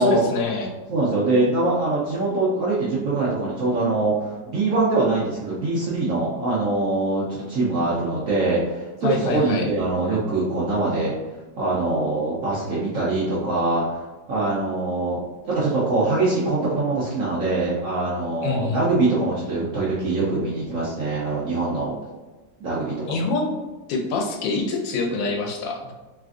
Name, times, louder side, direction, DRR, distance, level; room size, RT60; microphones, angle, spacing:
voice 1, 0.0-0.7 9.0-9.7 18.4-18.8 23.1-23.5 23.9-25.9, left 3 dB, 90° left, 2 dB, 1.3 m, -25 dB
voice 2, 0.9-11.1 11.6-14.0 14.3-15.2 15.5-22.0 22.6-23.2, right 2 dB, 70° right, -7 dB, 0.8 m, -23 dB
3.3 x 2.4 x 2.4 m, 1.2 s
omnidirectional pair, 2.0 m